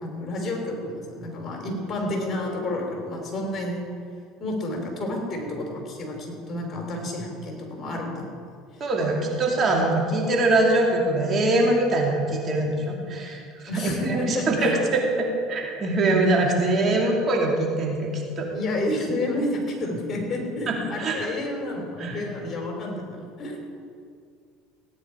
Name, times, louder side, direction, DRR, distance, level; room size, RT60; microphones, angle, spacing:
voice 1, 0.0-3.8 4.4-8.4 13.7-14.8 18.5-23.6, left 1 dB, 35° left, 1 dB, 3.6 m, -30 dB
voice 2, 8.8-18.5 20.7-21.3 22.0-22.2, right 2 dB, 35° right, -1 dB, 2.6 m, -23 dB
17.0 x 9.7 x 4.7 m, 2.3 s
supercardioid pair, 95°, 0 cm